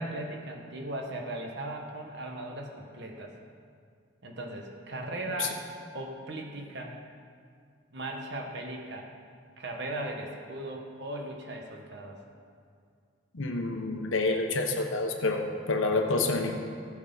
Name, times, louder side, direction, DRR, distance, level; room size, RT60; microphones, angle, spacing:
voice 1, 0.0-3.3 4.2-5.6 5.9-6.9 7.9-9.1 9.6-12.2, right 1 dB, 60° right, 1 dB, 1.3 m, -38 dB
voice 2, 13.3-16.5, left 3 dB, 90° left, 2 dB, 1.0 m, -28 dB
15.5 x 7.3 x 4.0 m, 2.2 s
head